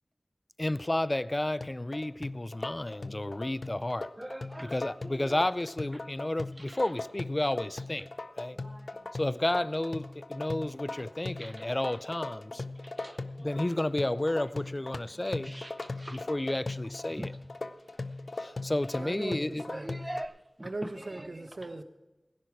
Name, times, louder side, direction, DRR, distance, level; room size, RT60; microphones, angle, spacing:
voice 1, 0.6-4.1 4.6-8.1 8.4-8.6 9.1-12.6 13.4-15.5 16.1-17.3 18.4-19.6, left 1 dB, 35° left, 0.5 m, -31 dB
sound 1, 1.6-20.3, left 3 dB, 80° left, 0.6 m, -39 dB
voice 2, 4.2-4.7 8.6-9.0 11.4-11.5 12.8-13.5 15.5-16.2 17.2-17.3 19.7-20.7, right 1 dB, 20° right, 0.7 m, -42 dB
voice 3, 19.0-20.0 20.6-21.8, right 2 dB, 75° right, 1.2 m, -39 dB
17.0 x 10.5 x 4.7 m
wide cardioid pair, 50°, 0 cm